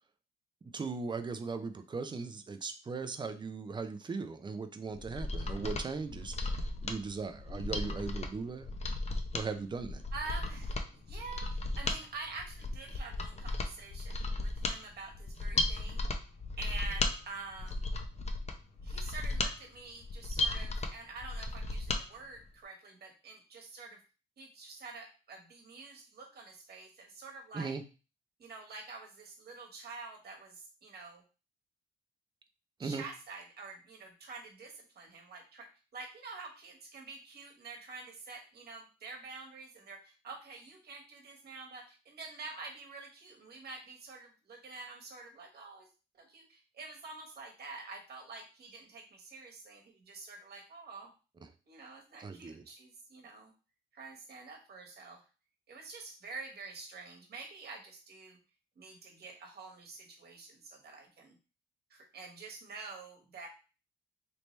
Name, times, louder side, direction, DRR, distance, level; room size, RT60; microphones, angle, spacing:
voice 1, 0.7-6.3 6.8-8.7 9.3-10.0 27.5-27.8 32.8-33.1 52.2-52.6, right 4 dB, 25° right, 9 dB, 0.5 m, -38 dB
Mechanisms, 4.9-22.0 22.4-22.5, left 2 dB, 35° left, 0.6 m, -35 dB
voice 2, 10.1-16.1 16.6-17.9 18.8-24.0 24.4-27.8 28.4-31.2 32.8-45.9 46.2-51.1 51.7-53.5 53.9-55.2 55.7-58.4 58.8-61.3 61.9-63.5, right 3 dB, 55° right, 1 dB, 1.3 m, -47 dB
3.3 x 2.8 x 3.2 m, 0.33 s
cardioid pair, 90°, 20 cm